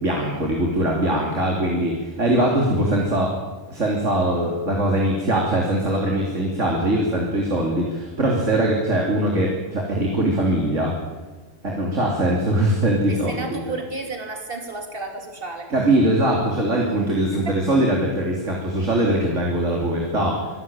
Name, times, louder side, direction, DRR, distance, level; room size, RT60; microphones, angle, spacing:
voice 1, 0.0-3.4 3.7-11.0 11.6-13.7 15.7-20.5, right 1 dB, 65° right, -1 dB, 3.5 m, -21 dB
voice 2, 13.1-15.7 17.3-17.6, right 3 dB, 45° right, 3 dB, 3.3 m, -32 dB
25.5 x 13.0 x 9.1 m, 1.3 s
omnidirectional pair, 1.4 m